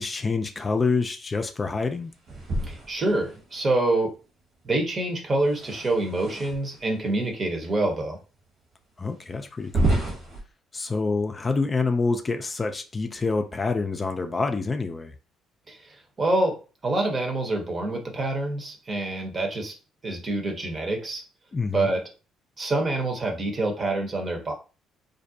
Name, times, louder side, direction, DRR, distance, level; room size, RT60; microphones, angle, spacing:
voice 1, 0.0-2.1 9.0-10.1 10.7-15.1 21.5-21.9, left 4 dB, 35° left, 0.4 m, -27 dB
sound 1, 2.3-3.6 5.4-6.9 7.6-7.7 8.4-8.5 9.6-10.4, right 2 dB, 60° right, 1.2 m, -29 dB
voice 2, 2.7-4.1 4.6-8.2 15.7-19.7 20.0-21.2 21.7-22.0 22.6-24.5, right 2 dB, 40° right, 0.8 m, -26 dB
2.5 x 2.1 x 2.7 m
hypercardioid pair, 55°, 0 cm